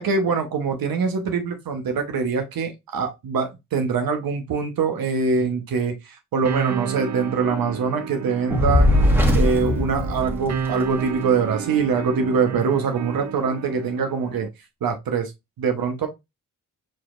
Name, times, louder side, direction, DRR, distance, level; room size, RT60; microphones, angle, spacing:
voice 1, 0.0-9.0 9.3-14.5 14.8-15.3 15.6-16.1, right 5 dB, 90° right, 1.2 m, -24 dB
sound 1, 6.4-14.5, right 7 dB, 55° right, 0.6 m, -32 dB
Fire, 8.5-11.0, left 1 dB, 5° right, 1.4 m, -19 dB
4.9 x 4.1 x 2.6 m
cardioid pair, 70°, 34 cm